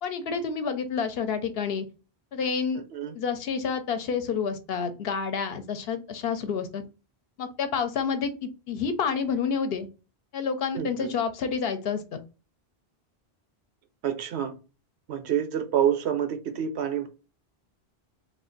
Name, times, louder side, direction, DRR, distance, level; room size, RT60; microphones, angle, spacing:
voice 1, 0.0-1.9 2.3-2.8 3.1-6.8 7.4-9.9 10.3-12.2, left 6 dB, 70° left, 0.8 m, -29 dB
voice 2, 2.7-3.2 10.7-11.1 14.0-14.5 15.1-17.1, right 9 dB, 85° right, 0.9 m, -28 dB
2.4 x 2.3 x 3.7 m
omnidirectional pair, 1.1 m